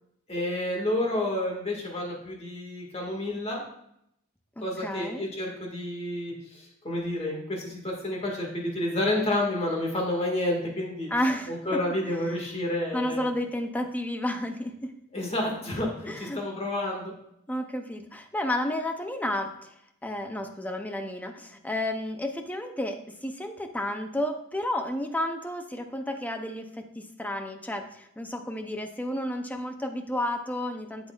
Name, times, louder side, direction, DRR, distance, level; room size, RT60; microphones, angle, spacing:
voice 1, 0.3-3.6 4.6-11.1 11.5-13.2 15.1-17.1, left 1 dB, 30° left, 0 dB, 1.7 m, -30 dB
voice 2, 4.6-5.3 11.1-11.8 12.1-12.2 12.9-14.9 16.1-16.4 17.5-19.7 20.0-31.1, left 1 dB, 5° left, 6 dB, 0.5 m, -31 dB
8.0 x 8.0 x 2.4 m, 0.76 s
head